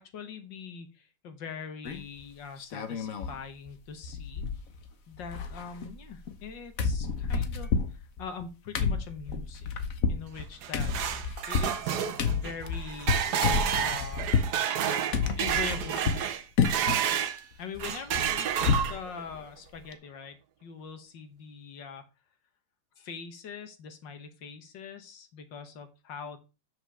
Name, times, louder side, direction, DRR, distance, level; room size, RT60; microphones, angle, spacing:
voice 1, 0.0-4.5 5.1-9.7 10.1-10.9 11.5-13.2 13.8-14.3 15.4-16.3 16.8-16.9 17.6-18.5 18.9-22.0 23.0-26.4, left 6 dB, 70° left, 8 dB, 1.9 m, -42 dB
sound 1, 1.8-2.2 2.6-3.4 3.7-3.8 4.0-4.9 5.1-6.5 6.8-14.6 15.1-16.3 16.6-17.0 17.4-19.0 19.3-19.4 19.7-19.9, left 5 dB, 50° left, 1.3 m, -30 dB
sound 2, 10.4-17.4 17.8-19.2, right 9 dB, 65° right, 1.3 m, -30 dB
6.4 x 5.2 x 6.7 m, 0.29 s
omnidirectional pair, 2.1 m